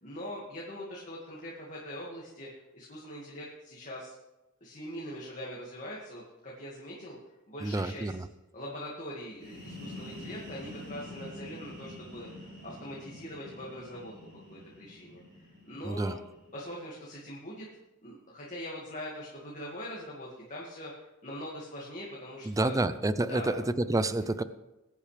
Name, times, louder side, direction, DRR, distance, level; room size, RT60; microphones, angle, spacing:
voice 1, 0.0-2.5 2.7-4.1 4.6-7.2 7.5-8.1 8.5-16.2 16.5-17.7 18.0-22.8 23.3-23.7, equal, 35° left, -4 dB, 2.0 m, -42 dB
voice 2, 7.6-8.3 15.8-16.2 22.5-24.4, right 2 dB, 15° right, 13 dB, 0.4 m, -29 dB
sound 1, 9.3-16.9, left 1 dB, 55° right, 3.8 m, -47 dB
21.5 x 8.6 x 3.4 m, 1.0 s
head